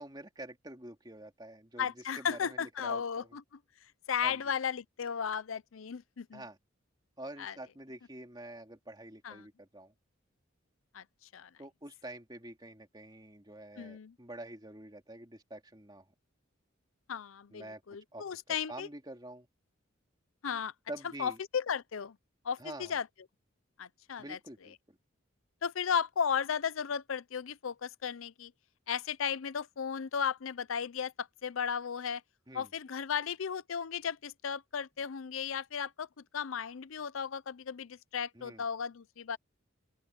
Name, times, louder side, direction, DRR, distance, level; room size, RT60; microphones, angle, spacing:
voice 1, 0.0-3.3 4.2-4.4 6.3-6.6 7.2-9.9 11.6-16.1 17.5-17.8 18.1-19.5 20.9-21.4 22.6-23.0 24.2-25.0 32.5-32.7 38.3-38.7, right 1 dB, 20° right, 2.7 m, -47 dB
voice 2, 1.8-3.4 4.1-6.4 7.4-7.5 9.2-9.4 10.9-11.0 11.3-11.5 13.8-14.1 17.1-18.9 20.4-20.7 21.2-22.2 22.4-23.1 23.8-24.4 25.6-28.5 28.9-32.2 32.5-36.1 36.3-39.4, left 7 dB, 80° left, 0.6 m, -35 dB
open air
head